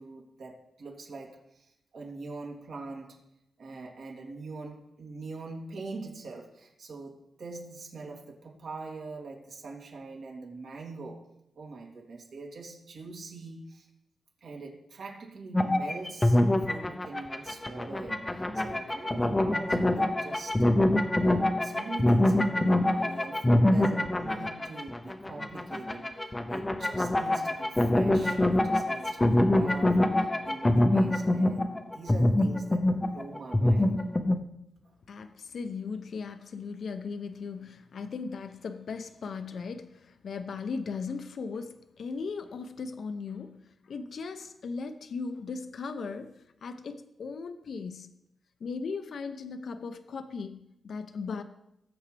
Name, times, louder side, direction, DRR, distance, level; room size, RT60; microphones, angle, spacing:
voice 1, 0.0-3.2 3.6-11.3 11.5-13.9 14.4-20.7 21.2-34.1, right 3 dB, 70° right, -2 dB, 2.9 m, -43 dB
sound 1, 15.5-34.4, left 1 dB, 15° left, 0.7 m, -25 dB
voice 2, 35.1-48.1 48.6-51.4, left 4 dB, 65° left, 9 dB, 0.7 m, -38 dB
19.0 x 7.8 x 3.4 m, 0.84 s
wide cardioid pair, 125°, 0 cm